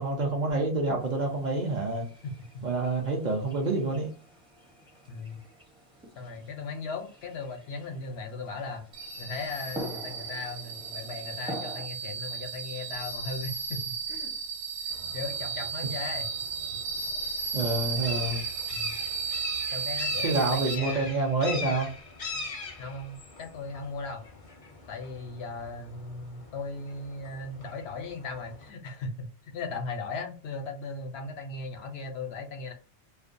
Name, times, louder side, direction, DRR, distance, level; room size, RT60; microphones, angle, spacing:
voice 1, 0.0-2.0 2.6-4.1 17.5-18.4 20.2-21.9, right 2 dB, 50° right, 0 dB, 0.6 m, -27 dB
sound 1, 1.0-11.9, equal, 5° right, 0.5 m, -46 dB
voice 2, 2.2-2.6 5.1-5.4 6.2-8.8 9.2-14.3 14.9-16.3 18.7-18.9 19.7-21.1 22.8-24.2 24.9-32.7, left 3 dB, 70° left, 4 dB, 0.8 m, -37 dB
sound 2, 8.9-20.7, right 5 dB, 90° right, 0.9 m, -34 dB
sound 3, 14.9-28.7, left 4 dB, 45° left, 0.5 m, -42 dB
2.4 x 2.1 x 2.5 m, 0.36 s
omnidirectional pair, 1.2 m